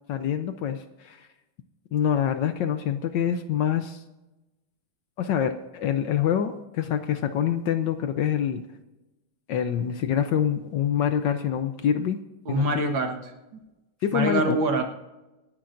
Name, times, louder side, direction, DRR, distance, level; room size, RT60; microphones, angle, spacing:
voice 1, 0.1-1.3 1.9-4.0 5.2-8.6 9.5-12.2 12.5-12.7 14.0-14.6, left 9 dB, 70° left, 9 dB, 1.2 m, -26 dB
voice 2, 12.5-13.3 14.1-14.8, right 2 dB, 65° right, 4 dB, 2.1 m, -25 dB
26.0 x 9.8 x 2.6 m, 1.0 s
omnidirectional pair, 2.3 m